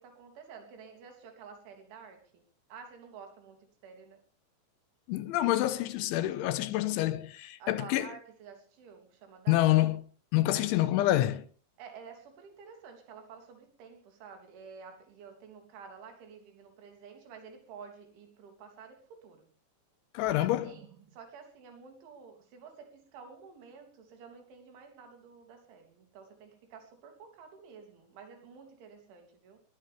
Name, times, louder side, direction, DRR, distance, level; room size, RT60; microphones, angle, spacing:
voice 1, 0.0-2.4 2.7-4.2 7.6-9.7 10.5-10.9 11.8-19.5 20.2-29.6, right 6 dB, 80° right, 5.4 m, -51 dB
voice 2, 5.1-8.1 9.5-10.0 10.3-11.4 20.1-20.7, left 15 dB, 80° left, 3.4 m, -27 dB
20.5 x 17.5 x 3.5 m
omnidirectional pair, 5.4 m